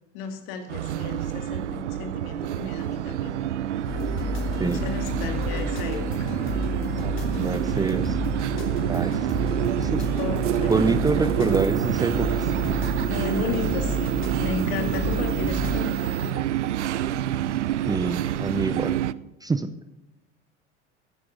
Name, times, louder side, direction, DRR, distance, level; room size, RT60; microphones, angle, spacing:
voice 1, 0.1-3.3 4.6-6.3 10.2-10.9 13.0-16.5, left 5 dB, 55° left, 5 dB, 2.5 m, -33 dB
sound 1, 0.7-19.1, right 12 dB, 75° right, 0.6 m, -27 dB
sound 2, 3.8-15.8, left 1 dB, 35° left, 3.7 m, -31 dB
voice 2, 7.0-8.2 8.9-9.3 9.8-10.2 10.7-12.5 17.9-18.9 19.4-19.7, right 4 dB, 10° right, 11 dB, 0.7 m, -26 dB
sound 3, 10.0-16.3, right 11 dB, 35° right, 1.3 m, -42 dB
17.0 x 11.0 x 3.7 m, 0.96 s
figure-of-eight pair, 75°, 35 cm